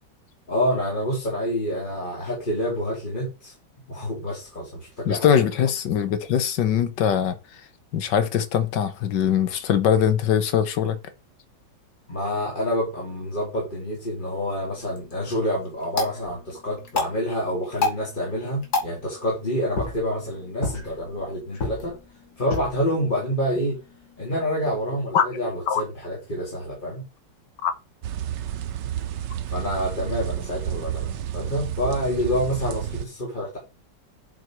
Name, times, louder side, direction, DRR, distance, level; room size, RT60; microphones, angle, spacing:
voice 1, 0.5-3.5 3.9-5.5 12.1-22.0 22.4-23.8 24.2-27.1 29.5-33.6, equal, 25° left, 2.4 m, -27 dB
voice 2, 5.1-7.4 7.9-11.0 25.1-25.2 25.7-25.8 27.6-27.7, left 8 dB, 70° left, 1.5 m, -21 dB
sound 1, 14.8-24.9, left 3 dB, 55° left, 2.6 m, -33 dB
sound 2, 28.0-33.1, right 11 dB, 75° right, 1.4 m, -30 dB
7.6 x 5.1 x 4.5 m
omnidirectional pair, 2.0 m